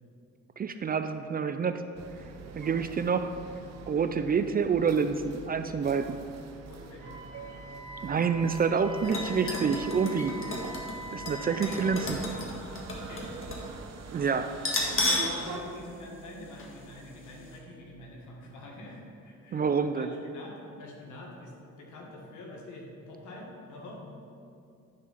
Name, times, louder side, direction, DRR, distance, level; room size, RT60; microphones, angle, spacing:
voice 1, 0.6-1.8 2.6-3.3 3.9-6.2 8.0-10.3 11.1-12.2 14.1-14.5 19.5-20.1, right 6 dB, 30° right, 9 dB, 0.4 m, -27 dB
sound 1, 2.0-15.6, right 5 dB, 60° right, 0.7 m, -45 dB
voice 2, 6.6-7.2 9.2-10.4 11.5-12.3 13.1-13.4 15.1-24.0, left 1 dB, 75° left, -1 dB, 1.7 m, -44 dB
Wind instrument woodwind instrument, 7.0-12.0, equal, 75° right, 2.0 m, -43 dB
sound 2, 9.0-13.7 14.0-14.1 14.6-15.4 15.7-15.8 16.6-16.8 17.1-17.2, left 2 dB, 45° left, 1.5 m, -33 dB
10.0 x 3.7 x 5.9 m, 2.5 s
cardioid pair, 90°, 30 cm